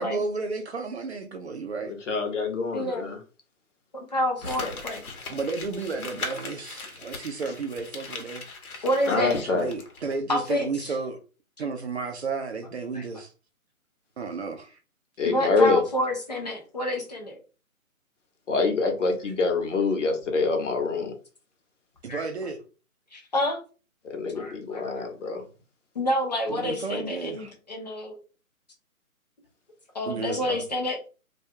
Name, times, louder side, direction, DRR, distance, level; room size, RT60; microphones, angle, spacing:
voice 1, 0.0-1.9 4.4-4.8 5.3-8.4 8.7-8.8 9.1-11.2 11.6-13.3 14.2-14.8 22.0-22.6 26.5-27.5 30.1-30.6, right 4 dB, 50° right, 0.4 m, -33 dB
voice 2, 1.9-3.2 9.1-9.7 15.2-15.8 18.5-21.1 24.1-25.4, left 4 dB, 55° left, 0.9 m, -25 dB
voice 3, 2.7-3.1 4.1-5.0 8.8-9.4 10.3-10.9 12.9-13.0 15.2-17.4 22.1-22.2 23.1-23.6 24.3-25.0 25.9-28.2 29.9-31.0, left 1 dB, 30° left, 0.5 m, -28 dB
Crumpling crinkling, 4.4-10.1 10.5-10.6, left 3 dB, 80° left, 0.9 m, -39 dB
2.3 x 2.3 x 2.7 m
hypercardioid pair, 155°, 43 cm